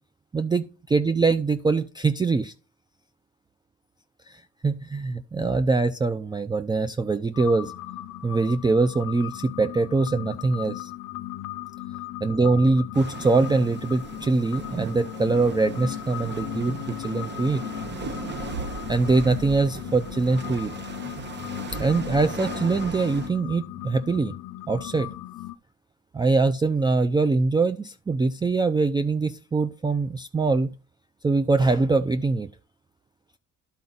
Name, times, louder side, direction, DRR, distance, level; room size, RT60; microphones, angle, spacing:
voice 1, 0.3-2.5 4.3-7.7 8.2-10.9 12.2-17.6 18.9-20.7 21.7-24.3 24.7-25.1 26.1-30.7 31.2-32.5, right 3 dB, 15° right, 10 dB, 0.4 m, -23 dB
sound 1, 7.3-25.5, left 14 dB, 75° left, 0.5 m, -37 dB
sound 2, 12.9-23.3, right 4 dB, 35° right, 1.0 m, -37 dB
11.0 x 4.3 x 3.9 m, 0.34 s
cardioid pair, 90°, 30 cm